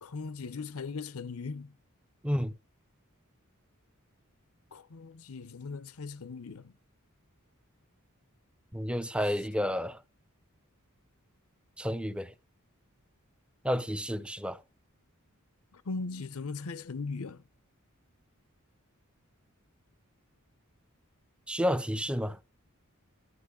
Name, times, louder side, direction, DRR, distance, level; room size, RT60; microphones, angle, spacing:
voice 1, 0.0-1.7 4.7-6.7 15.7-17.4, left 4 dB, 85° left, 0.7 m, -39 dB
voice 2, 8.7-10.0 11.8-12.3 13.6-14.6 21.5-22.4, equal, 5° right, 0.6 m, -30 dB
15.0 x 10.5 x 3.8 m
head